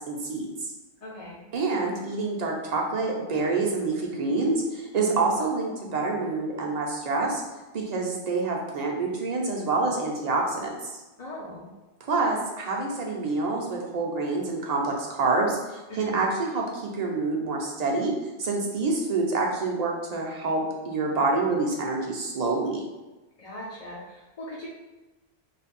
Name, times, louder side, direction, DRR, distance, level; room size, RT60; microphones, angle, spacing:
voice 1, 0.1-0.5 1.5-7.4 7.7-11.0 12.1-15.6 16.0-18.1 18.4-22.8, right 3 dB, 45° right, -1 dB, 0.7 m, -27 dB
voice 2, 1.0-1.4 5.0-5.3 11.2-11.7 15.9-16.3 23.4-24.7, equal, 45° left, -6 dB, 0.6 m, -40 dB
3.2 x 2.2 x 4.2 m, 1.1 s
omnidirectional pair, 1.0 m